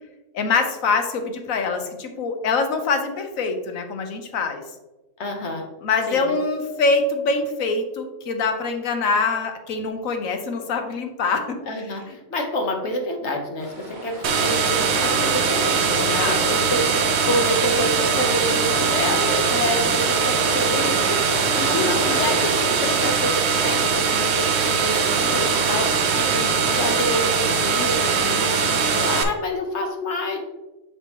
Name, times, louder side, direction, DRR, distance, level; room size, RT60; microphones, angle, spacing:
voice 1, 0.3-4.6 5.8-11.6 16.0-16.7 21.7-22.4, left 4 dB, 90° left, 6 dB, 1.3 m, -24 dB
voice 2, 5.2-5.7 6.1-6.3 11.7-30.4, left 1 dB, 60° left, 3 dB, 1.3 m, -28 dB
sound 1, 13.6-27.0, right 1 dB, 35° right, 1.3 m, -34 dB
sound 2, 14.2-29.2, right 5 dB, 60° right, 0.9 m, -21 dB
6.7 x 6.1 x 2.9 m, 1.1 s
omnidirectional pair, 1.4 m